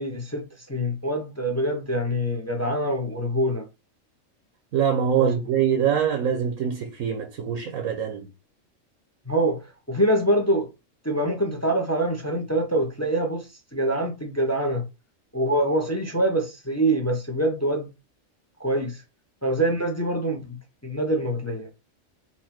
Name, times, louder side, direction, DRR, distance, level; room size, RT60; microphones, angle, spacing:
voice 1, 0.0-3.7 5.2-5.3 9.3-10.7 11.0-13.5 13.7-14.8 15.3-17.9 18.6-19.0 19.4-20.6 20.8-21.7, right 1 dB, 15° left, 0.7 m, -25 dB
voice 2, 4.7-8.3, right 8 dB, 85° right, 1.2 m, -24 dB
4.3 x 2.5 x 4.3 m
omnidirectional pair, 1.4 m